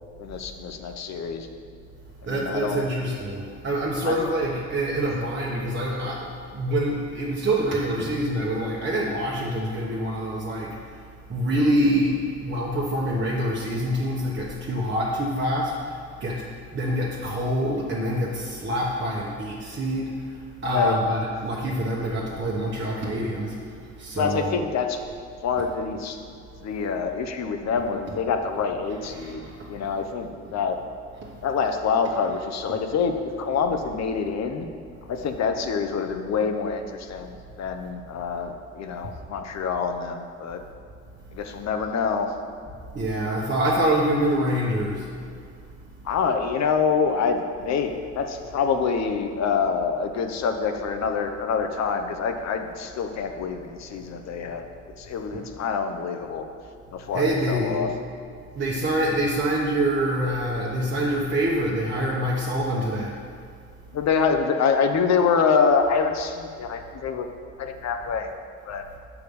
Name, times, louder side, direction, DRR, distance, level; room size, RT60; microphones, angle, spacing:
voice 1, 0.2-1.5 2.2-2.8 4.0-4.2 20.7-21.0 24.2-25.0 25.4-26.2 26.6-30.8 31.4-34.7 35.1-40.6 41.3-42.3 46.0-54.7 55.0-56.5 56.9-57.9 63.9-67.3 67.6-68.3 68.7-68.8, left 5 dB, 60° left, 6 dB, 0.7 m, -26 dB
voice 2, 2.3-10.8 11.3-16.4 16.7-20.1 20.6-23.5 24.0-24.7 29.1-29.6 42.9-45.1 55.3-55.4 57.1-57.8 58.6-63.1, right 1 dB, 40° right, -4 dB, 1.0 m, -26 dB
6.6 x 4.8 x 5.3 m, 2.3 s
cardioid pair, 90°, 30 cm